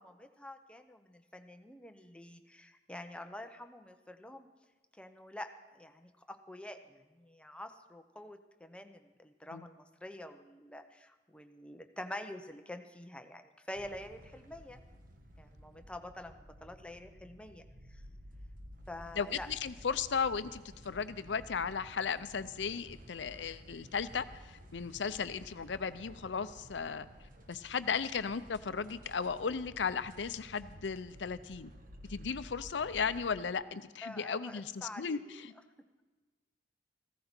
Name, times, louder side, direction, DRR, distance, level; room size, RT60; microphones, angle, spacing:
voice 1, 0.0-4.5 5.0-14.8 15.4-18.0 18.9-19.5 34.0-35.4 35.8-36.0, left 1 dB, 5° left, 7 dB, 0.7 m, -47 dB
sound 1, 13.7-33.3, equal, 50° right, 1.3 m, -53 dB
voice 2, 19.2-27.1 27.5-31.7 32.1-35.2, left 6 dB, 75° left, 13 dB, 0.6 m, -35 dB
15.5 x 14.5 x 4.4 m, 1.3 s
head